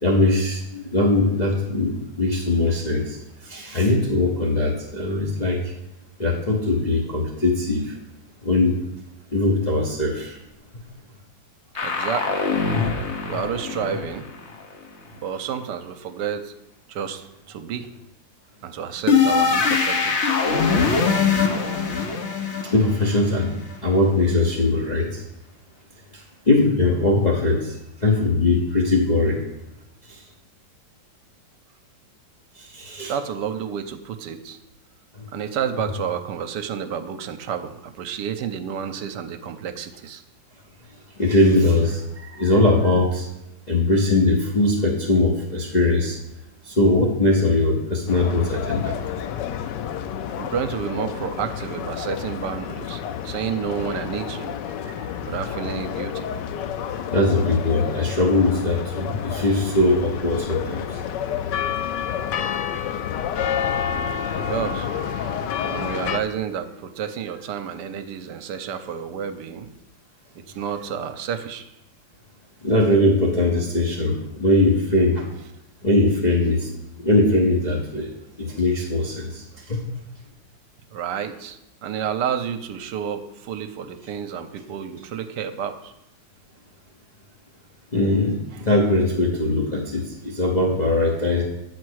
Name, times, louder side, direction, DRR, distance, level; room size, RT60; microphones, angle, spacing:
voice 1, 0.0-3.2 3.5-5.6 6.2-7.9 8.4-8.7 9.3-10.4 22.7-23.5 23.8-25.2 26.5-27.7 28.0-29.4 32.7-33.1 41.2-43.3 43.7-46.2 46.7-49.0 55.0-55.1 57.1-60.9 72.6-75.3 75.8-76.7 77.0-78.1 78.4-79.8 87.9-91.4, left 2 dB, 35° left, -3 dB, 0.8 m, -20 dB
sound 1, 11.8-14.6 19.1-23.8, left 5 dB, 50° left, 1.0 m, -22 dB
voice 2, 11.8-12.4 13.3-14.3 15.2-16.5 16.9-17.9 18.6-20.3 33.1-34.6 35.3-40.2 50.3-54.6 55.3-56.3 64.3-64.9 65.7-69.7 70.4-71.7 80.9-85.9, right 8 dB, 75° right, 9 dB, 1.2 m, -30 dB
sound 2, 48.1-66.2, left 8 dB, 75° left, 1.2 m, -29 dB
8.4 x 4.6 x 6.3 m, 0.87 s
omnidirectional pair, 2.0 m